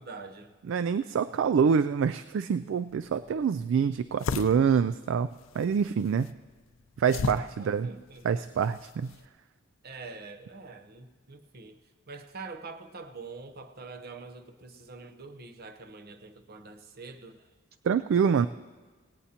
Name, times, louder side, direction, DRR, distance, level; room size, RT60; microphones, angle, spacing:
voice 1, 0.0-0.5 7.4-8.3 9.1-9.2 9.8-11.8 12.1-17.5, right 3 dB, 50° right, 8 dB, 0.8 m, -45 dB
voice 2, 0.7-5.3 5.5-6.3 7.0-7.9 8.2-9.1 17.8-18.5, right 6 dB, 65° right, 12 dB, 0.3 m, -26 dB
sound 1, 2.9-9.3, left 4 dB, 75° left, 0.5 m, -38 dB
18.0 x 17.0 x 2.9 m, 1.4 s
head